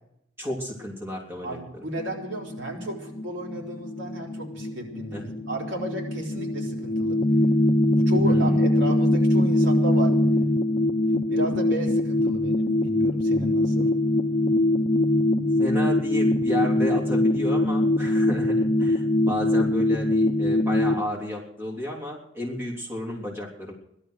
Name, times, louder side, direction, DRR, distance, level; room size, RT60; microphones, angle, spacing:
voice 1, 0.4-1.8 5.1-5.3 8.2-8.8 15.6-23.7, left 1 dB, 10° right, -2 dB, 3.4 m, -32 dB
voice 2, 1.4-7.2 7.9-10.1 11.3-13.9, right 1 dB, 65° right, -1 dB, 4.2 m, -33 dB
sound 1, 2.0-21.0, left 1 dB, 30° left, 1.0 m, -23 dB
17.0 x 12.0 x 6.5 m, 0.76 s
head